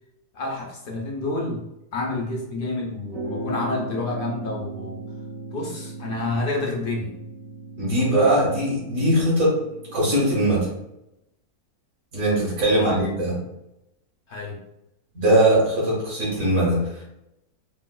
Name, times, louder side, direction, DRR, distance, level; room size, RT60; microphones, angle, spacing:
voice 1, 0.3-1.6 1.9-5.0 5.5-7.1 12.7-13.0 14.3-14.6, left 2 dB, 60° left, -2 dB, 0.5 m, -29 dB
sound 1, 3.1-10.8, right 2 dB, 40° right, 0.9 m, -37 dB
voice 2, 7.8-9.6 9.9-10.7 12.1-13.4 15.1-17.0, right 1 dB, 60° right, -7 dB, 1.8 m, -20 dB
4.4 x 2.0 x 2.2 m, 0.86 s
omnidirectional pair, 1.6 m